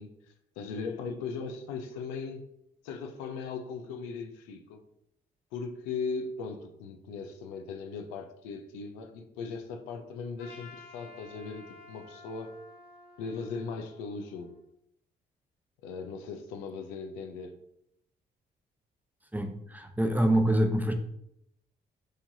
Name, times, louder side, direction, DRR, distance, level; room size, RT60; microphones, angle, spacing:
voice 1, 0.0-2.4 2.8-4.8 5.5-12.6 13.2-14.5 15.8-17.6, left 4 dB, 85° left, 0.5 m, -38 dB
Trumpet, 10.4-14.7, left 3 dB, 55° left, 1.4 m, -52 dB
voice 2, 19.3-20.9, right 1 dB, 10° right, 0.7 m, -26 dB
4.9 x 3.9 x 2.7 m
hypercardioid pair, 45°, 20 cm